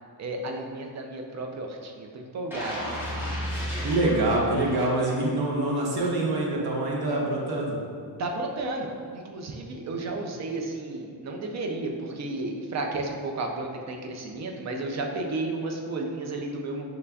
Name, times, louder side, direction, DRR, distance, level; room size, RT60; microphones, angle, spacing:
voice 1, 0.2-3.6 8.2-16.8, right 2 dB, 40° right, 2 dB, 0.4 m, -33 dB
sound 1, 2.5-5.5 5.9-6.0, equal, 5° right, 0.7 m, -33 dB
voice 2, 3.8-7.8, right 2 dB, 60° right, -3 dB, 0.8 m, -25 dB
5.3 x 3.3 x 2.3 m, 2.2 s
wide cardioid pair, 175°, 43 cm